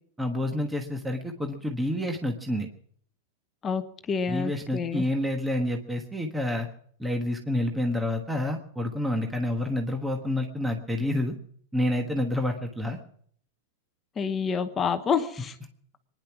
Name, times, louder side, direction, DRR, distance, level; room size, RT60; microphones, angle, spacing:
voice 1, 0.2-2.7 4.3-6.7 7.0-11.3 11.7-13.0, left 1 dB, 5° right, 3 dB, 1.3 m, -28 dB
voice 2, 3.6-5.0 14.2-15.5, left 6 dB, 15° left, 8 dB, 1.0 m, -28 dB
23.0 x 10.5 x 6.0 m, 0.63 s
supercardioid pair, 160°, 0 cm